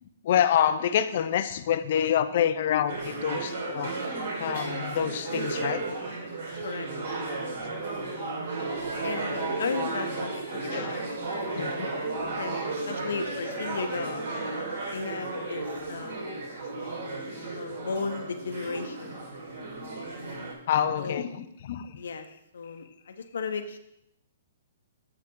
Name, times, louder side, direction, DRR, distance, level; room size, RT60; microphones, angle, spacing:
voice 1, 0.2-3.9 4.4-5.8 10.6-10.9 11.6-11.9 20.7-21.9, left 9 dB, 50° left, 12 dB, 0.6 m, -27 dB
sound 1, 2.9-20.5, right 3 dB, 65° right, 2.8 m, -34 dB
voice 2, 9.0-11.6 12.2-12.6 12.9-14.3 14.9-16.4 17.5-19.2 21.0-21.2 21.9-22.3 22.5-23.8, left 4 dB, 80° left, 8 dB, 0.9 m, -35 dB
7.6 x 7.4 x 3.8 m, 0.79 s
hypercardioid pair, 160°, 0 cm